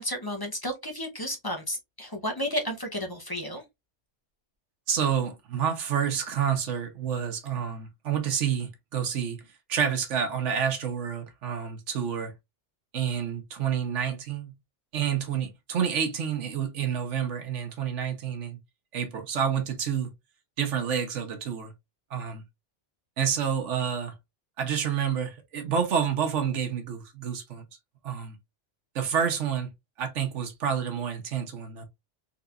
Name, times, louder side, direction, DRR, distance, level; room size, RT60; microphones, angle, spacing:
voice 1, 0.0-3.6, equal, 25° left, 0.6 m, -32 dB
voice 2, 4.9-9.4 9.7-12.3 12.9-14.6 14.9-18.6 18.9-20.1 20.6-21.7 22.1-22.4 23.2-24.1 24.6-27.6 28.0-28.4 28.9-29.7 30.0-31.8, right 8 dB, 90° right, 1.2 m, -29 dB
4.0 x 2.9 x 2.3 m
omnidirectional pair, 1.2 m